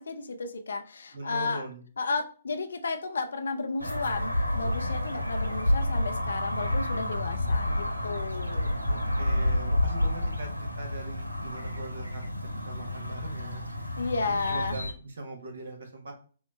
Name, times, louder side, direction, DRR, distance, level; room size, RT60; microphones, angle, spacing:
voice 1, 0.0-1.7 2.0-8.7 14.0-14.8, left 4 dB, 60° left, 6 dB, 0.5 m, -33 dB
voice 2, 1.1-1.8 8.9-12.2 12.6-13.6 14.3-16.1, right 2 dB, 60° right, 4 dB, 1.2 m, -41 dB
sound 1, 3.8-14.9, left 1 dB, 85° right, 0.6 m, -29 dB
5.6 x 2.1 x 3.0 m, 0.41 s
figure-of-eight pair, 125°, 0 cm